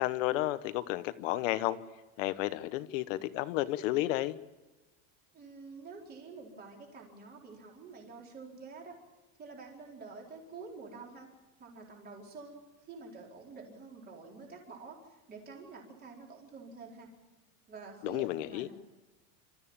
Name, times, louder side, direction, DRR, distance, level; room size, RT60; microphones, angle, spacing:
voice 1, 0.0-1.8 2.2-4.4 18.0-18.7, left 16 dB, 70° left, 13 dB, 1.2 m, -32 dB
voice 2, 5.3-9.0 9.4-11.3 11.6-12.6 12.9-17.1 17.7-18.7, right 4 dB, 25° right, -1 dB, 4.4 m, -48 dB
26.5 x 14.0 x 8.8 m, 1.2 s
supercardioid pair, 160°, 39 cm